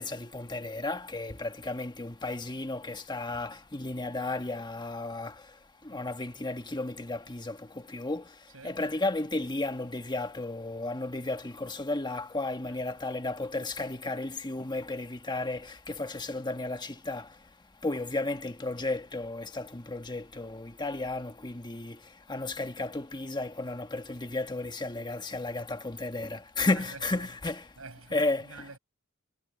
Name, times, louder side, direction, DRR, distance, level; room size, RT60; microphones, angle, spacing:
voice 1, 0.0-17.5 17.8-27.7 28.1-28.7, left 2 dB, 20° left, 1.2 m, -34 dB
voice 2, 26.7-27.3 27.8-28.8, right 3 dB, 90° right, 5.6 m, -48 dB
head